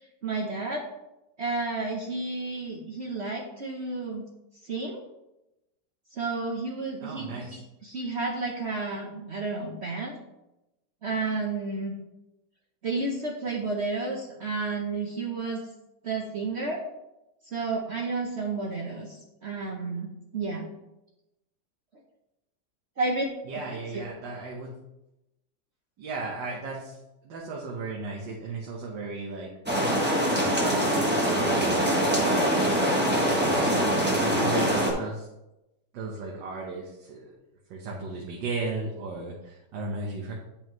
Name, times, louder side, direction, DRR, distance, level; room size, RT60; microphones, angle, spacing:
voice 1, 0.2-0.8 1.4-4.2 4.6-5.0 6.1-10.2 11.0-11.9 12.8-15.6 16.0-16.8 17.5-20.7 23.0-23.2 23.5-23.6 23.9-24.0, right 3 dB, 50° right, -1 dB, 0.9 m, -31 dB
voice 2, 7.0-7.6 23.5-24.7 26.0-27.0 27.2-29.5 30.4-32.8 33.6-35.3 35.9-37.4 37.7-40.3, right 3 dB, 85° right, -1 dB, 1.7 m, -35 dB
sound 1, 29.7-34.9, equal, 5° right, 1.1 m, -24 dB
9.1 x 5.4 x 3.1 m, 0.93 s
omnidirectional pair, 1.9 m